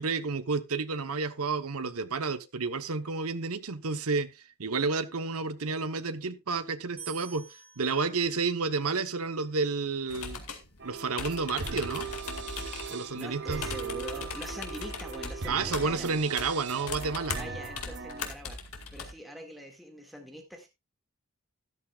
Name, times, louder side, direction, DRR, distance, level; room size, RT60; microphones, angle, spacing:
voice 1, 0.0-4.3 4.6-7.5 7.8-10.4 10.8-12.1 12.9-13.6 15.5-17.4, right 4 dB, 80° right, 1.0 m, -30 dB
sound 1, 7.0-10.2, right 8 dB, 25° right, 5.7 m, -51 dB
sound 2, 10.1-19.1, left 4 dB, 80° left, 2.2 m, -40 dB
sound 3, 10.8-18.3, right 5 dB, 50° right, 1.0 m, -39 dB
voice 2, 12.7-16.1 17.4-20.7, equal, ahead, 2.0 m, -44 dB
13.5 x 11.5 x 2.4 m
head